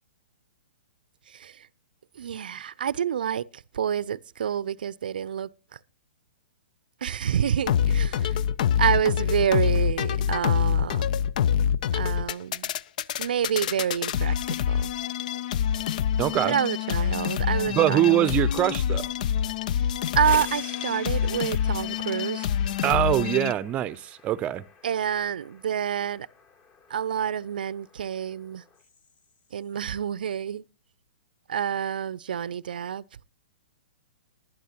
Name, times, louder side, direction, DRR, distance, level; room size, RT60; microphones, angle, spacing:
voice 1, 1.3-1.7 2.2-5.5 7.0-8.4 8.8-11.1 11.9-12.7 13.2-14.4 14.7-14.9 16.4-18.1 20.2-22.5 24.8-26.3 26.9-28.6 29.5-30.6 31.5-33.0, right 9 dB, 65° right, 0.6 m, -28 dB
sound 1, 7.7-23.5, left 9 dB, 50° left, 0.5 m, -26 dB
voice 2, 16.2-16.6 17.7-19.1 22.8-24.6, right 12 dB, 25° right, 0.6 m, -23 dB
sound 2, 19.8-29.6, left 5 dB, 30° left, 1.6 m, -47 dB
20.0 x 11.5 x 2.9 m
figure-of-eight pair, 115°, 5 cm